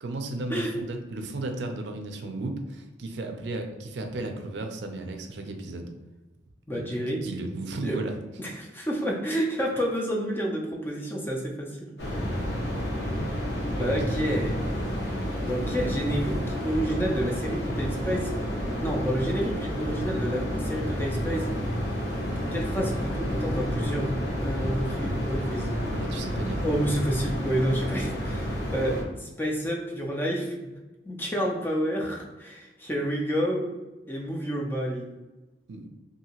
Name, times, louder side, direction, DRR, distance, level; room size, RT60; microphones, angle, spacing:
voice 1, 0.0-5.9 6.7-8.2 13.8-14.3 25.7-26.6 35.7-35.9, right 2 dB, 70° right, 5 dB, 0.4 m, -34 dB
voice 2, 6.7-7.2 7.8-8.0 8.4-11.9 13.8-14.6 15.5-18.3 18.8-21.5 22.5-25.7 26.6-30.5 31.0-33.7 34.1-35.1, equal, 10° left, -1 dB, 0.4 m, -29 dB
sound 1, 12.0-29.0, equal, 65° left, 0.8 m, -30 dB
2.8 x 2.6 x 2.9 m, 1.1 s
head